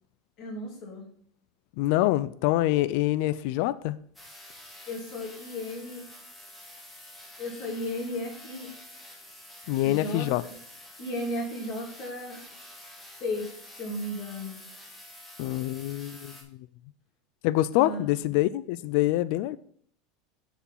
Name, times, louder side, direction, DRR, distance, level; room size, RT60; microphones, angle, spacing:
voice 1, 0.4-1.1 4.9-6.1 7.4-8.7 9.8-10.5 11.0-12.4 13.2-13.5 13.8-14.6 17.8-18.3, left 1 dB, 40° left, 2.9 m, -35 dB
voice 2, 1.8-4.0 9.7-10.4 15.4-16.3 17.4-19.6, left 16 dB, 60° left, 0.3 m, -25 dB
sound 1, 4.1-16.4, left 1 dB, 5° left, 1.4 m, -48 dB
6.8 x 5.0 x 5.5 m
supercardioid pair, 160°, 0 cm